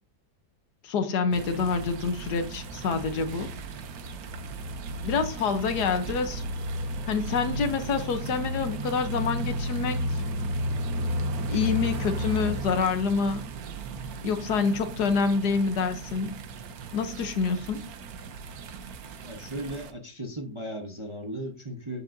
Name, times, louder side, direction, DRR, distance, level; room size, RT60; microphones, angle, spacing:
voice 1, 0.8-3.5 5.0-6.4 7.1-10.0 11.5-13.4 14.2-16.4 16.9-17.8, left 5 dB, 70° left, 1.5 m, -27 dB
sound 1, 1.3-19.9, right 1 dB, 65° right, 1.2 m, -34 dB
voice 2, 19.2-22.0, right 1 dB, 25° right, 0.7 m, -36 dB
8.2 x 7.4 x 2.6 m
omnidirectional pair, 1.8 m